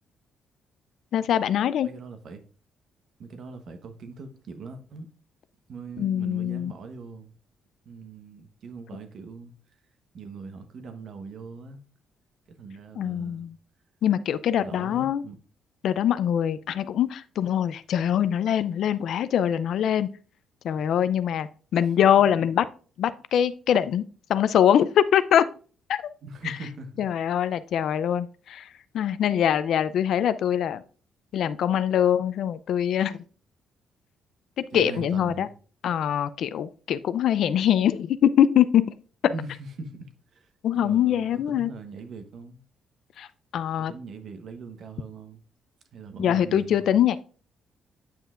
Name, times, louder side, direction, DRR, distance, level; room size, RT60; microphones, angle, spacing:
voice 1, 1.1-1.9 6.0-6.7 13.0-13.6 14.0-15.2 15.8-20.1 20.6-22.7 23.0-24.0 24.3-25.5 25.9-26.0 27.0-28.7 28.9-30.8 31.3-33.2 34.6-35.5 35.8-38.8 39.2-39.3 40.6-41.7 43.2-43.3 43.5-43.9 46.2-47.2, left 10 dB, 70° left, 0.4 m, -23 dB
voice 2, 1.8-2.4 3.2-5.1 5.7-7.3 7.8-9.5 10.1-11.8 12.5-13.5 14.6-15.4 22.3-22.4 26.2-27.1 34.7-35.5 39.3-42.6 43.9-45.4 45.9-47.0, right 4 dB, 65° right, 1.0 m, -41 dB
8.9 x 5.6 x 2.5 m
cardioid pair, 90°, 0 cm